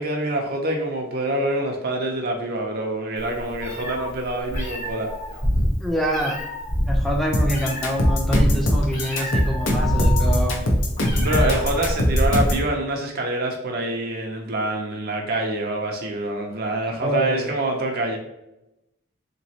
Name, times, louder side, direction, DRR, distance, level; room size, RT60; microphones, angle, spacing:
voice 1, 0.0-5.1 11.2-18.2, right 1 dB, 50° right, 1 dB, 0.5 m, -26 dB
Meow, 3.2-12.6, equal, 40° left, 1.0 m, -25 dB
voice 2, 5.8-6.4 6.9-10.6 17.0-17.5, equal, ahead, 0 dB, 0.5 m, -26 dB
sound 1, 7.3-12.7, left 1 dB, 70° left, 0.7 m, -21 dB
3.3 x 3.0 x 2.7 m, 0.90 s
head